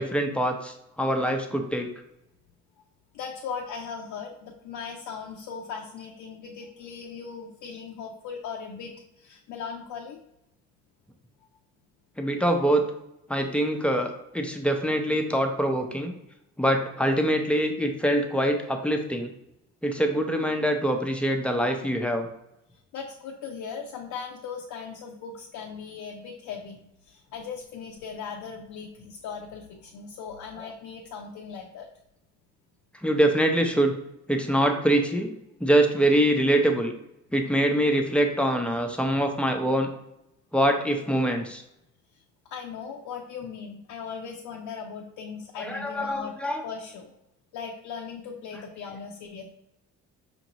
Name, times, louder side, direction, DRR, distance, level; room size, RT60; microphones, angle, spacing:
voice 1, 0.0-1.9 12.2-12.9 13.3-16.1 16.6-19.3 19.8-22.3 33.0-33.9 34.3-35.3 35.6-36.9 37.3-39.9 40.5-41.6 45.6-46.6, right 1 dB, 5° left, 4 dB, 0.6 m, -24 dB
voice 2, 3.1-10.2 22.9-31.9 42.4-46.4 46.6-47.1 47.5-49.4, left 6 dB, 80° left, 1 dB, 0.6 m, -38 dB
5.1 x 2.6 x 2.9 m, 0.85 s
cardioid pair, 90°, 30 cm